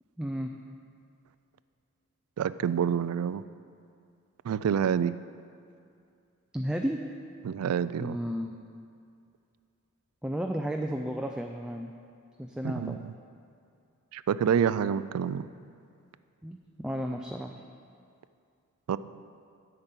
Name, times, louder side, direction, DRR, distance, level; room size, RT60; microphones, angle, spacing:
voice 1, 0.2-0.5 6.5-7.0 8.0-8.6 10.2-11.9 12.4-13.1 16.4-17.5, equal, 5° right, 2 dB, 0.4 m, -33 dB
voice 2, 2.4-3.4 4.4-5.2 7.4-8.2 12.6-13.1 14.1-15.5 18.9-19.0, right 8 dB, 85° right, 16 dB, 0.3 m, -27 dB
8.8 x 5.8 x 8.2 m, 2.4 s
head